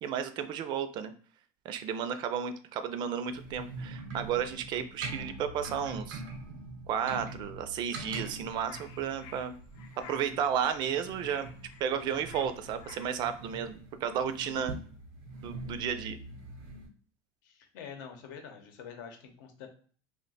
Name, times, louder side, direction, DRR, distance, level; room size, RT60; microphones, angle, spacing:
voice 1, 0.0-1.1 1.6-6.2 6.9-9.5 10.0-11.5 11.8-14.8 15.4-16.2, right 8 dB, 45° right, 10 dB, 0.4 m, -33 dB
sound 1, 3.3-16.9, right 2 dB, 80° right, 0.7 m, -44 dB
sound 2, 8.1-13.3, left 7 dB, 55° left, 0.5 m, -53 dB
voice 2, 17.4-19.7, left 7 dB, 85° left, 4 dB, 0.8 m, -46 dB
2.4 x 2.2 x 4.0 m, 0.44 s
supercardioid pair, 135°, 10 cm